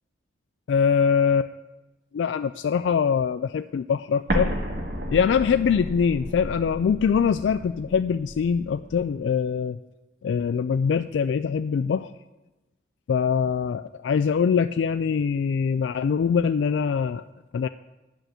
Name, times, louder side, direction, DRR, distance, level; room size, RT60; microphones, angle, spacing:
voice 1, 0.7-1.5 2.1-4.5 5.1-9.8 10.2-12.1 13.1-17.2 17.5-17.7, left 6 dB, 75° left, 11 dB, 0.3 m, -23 dB
Explosion, 4.3-9.0, right 1 dB, 55° right, 1.7 m, -32 dB
10.5 x 5.8 x 8.0 m, 1.1 s
head